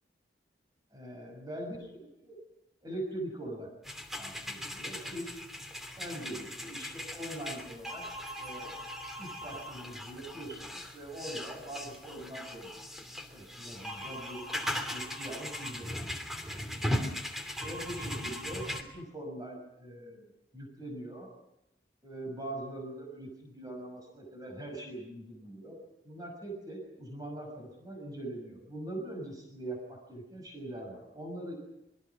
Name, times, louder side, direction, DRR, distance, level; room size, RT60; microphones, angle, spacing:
voice 1, 0.9-2.4 2.8-3.7 4.2-5.4 5.9-8.0 8.4-8.8 9.2-12.7 13.2-14.5 14.9-16.1 16.4-17.0 17.6-21.3 22.0-25.8 26.0-31.6, right 1 dB, 20° right, 0 dB, 6.3 m, -42 dB
sound 1, 3.8-18.8, equal, ahead, 2.8 m, -39 dB
26.5 x 22.0 x 6.0 m, 0.84 s
head